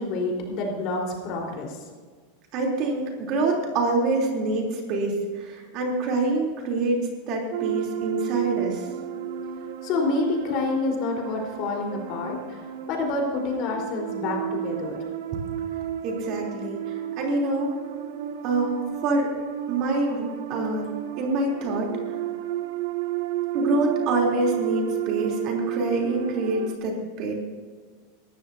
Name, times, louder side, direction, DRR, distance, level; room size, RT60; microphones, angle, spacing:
voice 1, 0.0-1.8 9.8-15.0, left 3 dB, 45° left, 1 dB, 4.2 m, -28 dB
voice 2, 2.5-7.0 7.3-8.9 16.0-17.7 18.4-19.3 19.7-20.9 21.2-22.1 23.5-27.3, right 2 dB, 45° right, 0 dB, 3.4 m, -26 dB
sound 1, 7.5-26.8, right 11 dB, 70° right, 1.0 m, -32 dB
19.0 x 14.0 x 2.8 m, 1.5 s
supercardioid pair, 150°, 0 cm